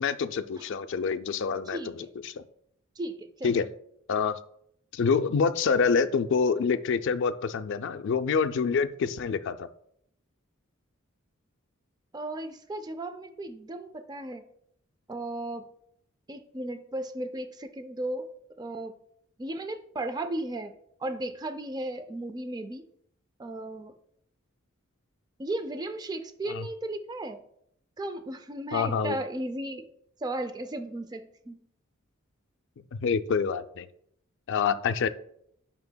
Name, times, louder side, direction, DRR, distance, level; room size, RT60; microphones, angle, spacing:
voice 1, 0.0-2.4 3.4-3.6 4.1-4.4 4.9-9.7 26.5-26.7 28.7-29.2 33.0-33.9 34.5-35.1, left 5 dB, 60° left, 10 dB, 0.4 m, -26 dB
voice 2, 1.7-2.1 3.0-3.6 12.1-14.5 15.1-15.7 16.3-18.3 18.6-18.9 19.4-22.8 23.4-23.9 25.4-27.4 28.0-29.9 30.2-31.6, right 1 dB, 20° right, 9 dB, 0.4 m, -35 dB
9.5 x 5.7 x 2.2 m, 0.72 s
head